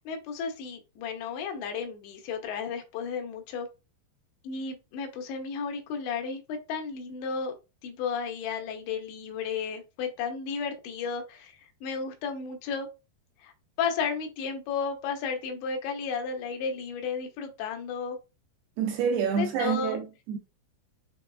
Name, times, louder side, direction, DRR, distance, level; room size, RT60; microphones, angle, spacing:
voice 1, 0.1-3.7 4.4-7.5 7.8-12.9 13.4-13.5 13.8-18.2 19.4-20.0, left 5 dB, 90° left, 3.1 m, -33 dB
voice 2, 18.8-20.4, right 7 dB, 80° right, 2.3 m, -28 dB
6.9 x 3.0 x 2.4 m
omnidirectional pair, 5.0 m